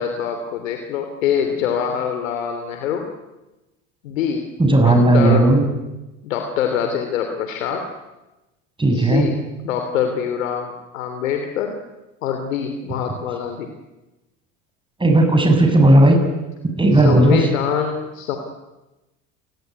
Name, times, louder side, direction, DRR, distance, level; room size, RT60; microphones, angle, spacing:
voice 1, 0.0-3.1 4.0-4.5 4.8-5.5 6.2-7.9 8.9-9.4 9.6-11.7 12.2-13.7 16.9-18.4, left 8 dB, 80° left, 5 dB, 3.2 m, -24 dB
voice 2, 4.6-5.6 8.8-9.3 15.0-16.2 16.6-17.5, right 1 dB, 10° right, 5 dB, 7.8 m, -14 dB
29.0 x 21.0 x 9.6 m, 1.0 s
hypercardioid pair, 80°, 39 cm